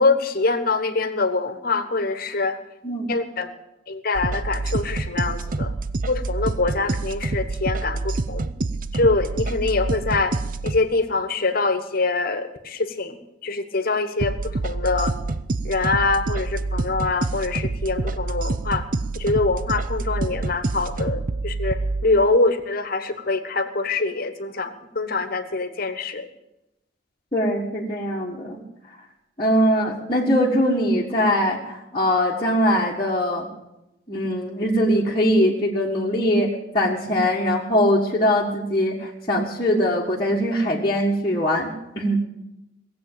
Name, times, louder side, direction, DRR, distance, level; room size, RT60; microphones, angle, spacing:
voice 1, 0.0-2.6 3.1-3.5 3.9-5.7 6.1-8.5 8.9-10.3 10.6-15.1 15.6-18.9 19.1-26.3, left 3 dB, 50° left, 10 dB, 1.3 m, -24 dB
sound 1, 4.1-10.8 14.2-22.0, right 3 dB, 45° right, 0.6 m, -27 dB
voice 2, 27.3-28.6 29.4-33.5 34.1-36.5 36.7-42.2, equal, 25° left, -5 dB, 1.6 m, -21 dB
18.0 x 7.8 x 8.9 m, 0.89 s
head